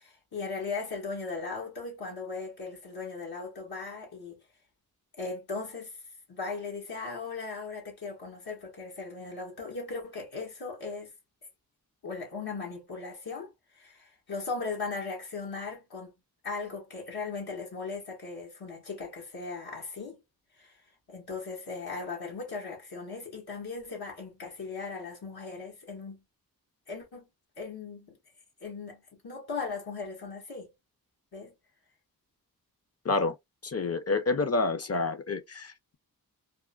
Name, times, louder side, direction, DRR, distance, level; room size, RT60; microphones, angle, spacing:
voice 1, 0.0-4.4 5.1-6.0 6.3-11.1 12.0-16.1 16.4-20.2 20.6-20.8 21.1-26.2 26.9-27.3 27.6-28.2 28.6-30.7 31.3-31.5, left 4 dB, 80° left, 1.4 m, -38 dB
voice 2, 33.0-33.4 33.6-36.0, left 3 dB, 40° left, 0.6 m, -28 dB
3.5 x 2.2 x 2.3 m
cardioid pair, 45°, 36 cm